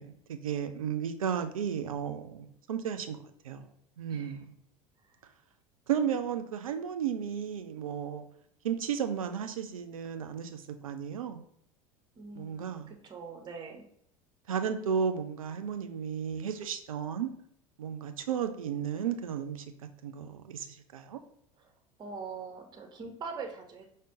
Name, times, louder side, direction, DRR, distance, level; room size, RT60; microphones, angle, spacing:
voice 1, 0.0-3.2 3.4-3.6 4.0-4.5 5.9-8.3 8.6-11.4 12.4-12.9 14.5-17.3 17.8-19.6 20.0-21.2, right 8 dB, 70° right, 7 dB, 0.5 m, -34 dB
voice 2, 4.1-4.4 12.2-13.8 21.6-21.7 22.0-23.8, right 4 dB, 25° right, 4 dB, 0.7 m, -43 dB
4.9 x 2.1 x 3.7 m, 0.68 s
figure-of-eight pair, 75°, 18 cm